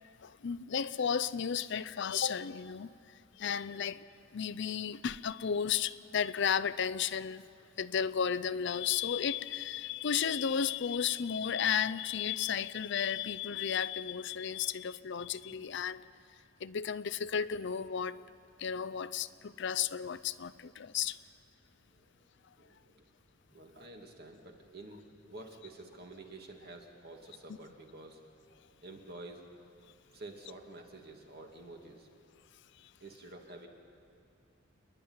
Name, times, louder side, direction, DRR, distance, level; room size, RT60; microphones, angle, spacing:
voice 1, 0.2-2.9 3.4-4.0 4.3-7.5 7.8-16.1 16.6-18.3 18.6-21.2, left 7 dB, 65° left, 0.5 m, -33 dB
voice 2, 22.6-23.1 23.5-28.2 28.8-29.4 30.1-32.1 33.0-33.7, right 2 dB, 55° right, 2.3 m, -49 dB
29.0 x 11.0 x 9.6 m
head